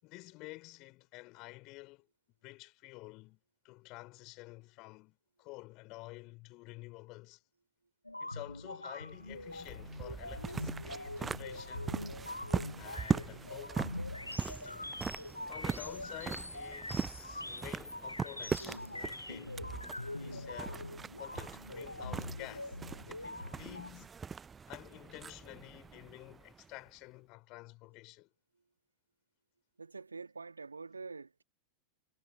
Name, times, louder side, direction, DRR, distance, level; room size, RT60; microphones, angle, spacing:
voice 1, 0.0-2.1 2.4-3.4 3.6-7.4 8.2-12.0 12.8-13.9 14.4-15.0 15.5-19.6 20.2-20.9 21.2-22.8 23.1-24.2 24.7-28.3, left 23 dB, 40° left, 4.7 m, -50 dB
sound 1, 8.0-23.9, left 1 dB, 85° left, 0.7 m, -43 dB
sound 2, 9.2-26.9, right 6 dB, 15° right, 0.5 m, -41 dB
voice 2, 29.8-31.4, right 4 dB, 75° right, 1.6 m, -46 dB
figure-of-eight pair, 90°, 0 cm